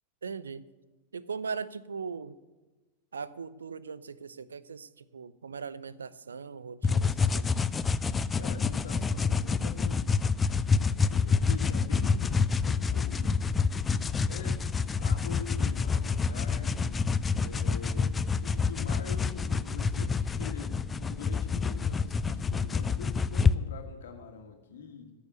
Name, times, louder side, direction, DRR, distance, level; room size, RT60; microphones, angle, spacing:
voice 1, 0.2-0.6 1.1-2.4 3.1-7.5, right 5 dB, 70° right, 18 dB, 0.5 m, -39 dB
sound 1, 6.8-23.5, left 5 dB, 15° left, 0.4 m, -27 dB
voice 2, 8.3-10.1 11.1-13.5 14.3-14.7 15.0-17.0 17.4-25.1, left 6 dB, 60° left, 4 dB, 1.9 m, -44 dB
14.5 x 7.0 x 9.3 m, 1.2 s
figure-of-eight pair, 90°, 0 cm